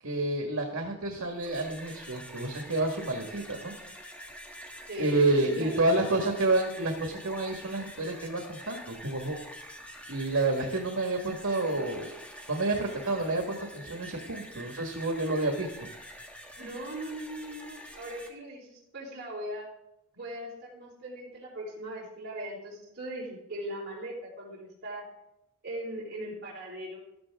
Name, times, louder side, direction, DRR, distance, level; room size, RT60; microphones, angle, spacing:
voice 1, 0.0-3.7 5.0-9.4 10.1-12.1 12.5-15.9, right 2 dB, 80° right, 2 dB, 1.9 m, -29 dB
sound 1, 1.2-18.3, equal, 5° left, 1.5 m, -46 dB
voice 2, 4.9-5.8 16.6-19.7 20.1-25.1 25.6-27.0, right 1 dB, 50° right, -5 dB, 3.8 m, -39 dB
14.0 x 13.5 x 3.7 m, 0.87 s
head